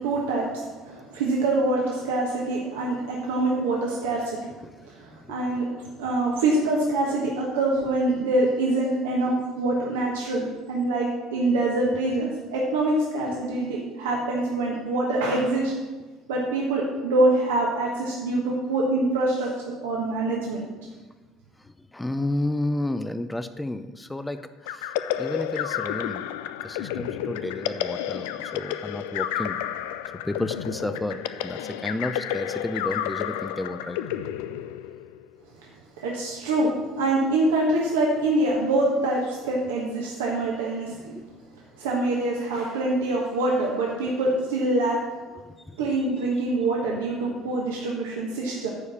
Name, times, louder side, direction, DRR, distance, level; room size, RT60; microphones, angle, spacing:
voice 1, 0.0-4.4 4.9-5.7 6.0-15.7 16.3-20.7 36.0-41.1 41.8-45.0 45.8-48.7, right 2 dB, 80° right, -3 dB, 1.3 m, -25 dB
voice 2, 4.6-5.4 9.3-9.4 21.6-26.2 26.6-29.6 30.2-34.0 41.2-41.3 45.7-45.8, left 1 dB, 10° left, 10 dB, 0.5 m, -32 dB
sound 1, 24.7-35.2, left 11 dB, 70° left, 0.4 m, -31 dB
9.8 x 4.8 x 6.9 m, 1.3 s
hypercardioid pair, 65°, 0 cm